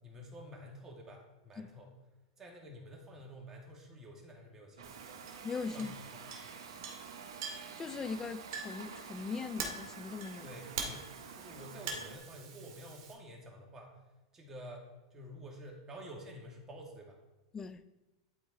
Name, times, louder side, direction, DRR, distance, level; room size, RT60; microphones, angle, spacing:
voice 1, 0.0-1.9 2.4-5.0 5.7-6.3 10.4-11.1 11.3-14.0 14.3-17.2, equal, 20° right, 2.2 m, -50 dB
Chink clink, 4.8-13.1, right 5 dB, 65° right, 2.1 m, -45 dB
sound 1, 4.8-12.2, right 6 dB, 85° right, 0.9 m, -49 dB
voice 2, 5.4-5.9 7.8-10.5 17.5-17.8, left 5 dB, 20° left, 0.5 m, -40 dB
11.5 x 4.6 x 4.1 m
hypercardioid pair, 120°, 2 cm